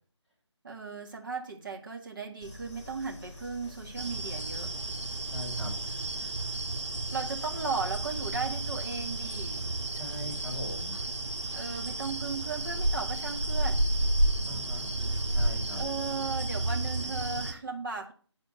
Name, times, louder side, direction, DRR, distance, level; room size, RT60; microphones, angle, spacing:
voice 1, 0.6-4.7 7.1-9.7 11.5-13.9 15.7-18.1, right 4 dB, 45° right, 1 dB, 2.0 m, -36 dB
sound 1, 2.4-17.5, left 2 dB, 15° left, 2.4 m, -48 dB
sound 2, 4.0-17.5, right 1 dB, 75° right, 2.0 m, -32 dB
voice 2, 5.3-6.3 9.9-11.0 14.5-15.0 15.3-15.8, equal, 5° right, -10 dB, 3.8 m, -41 dB
9.3 x 4.3 x 6.3 m, 0.43 s
figure-of-eight pair, 155°, 15 cm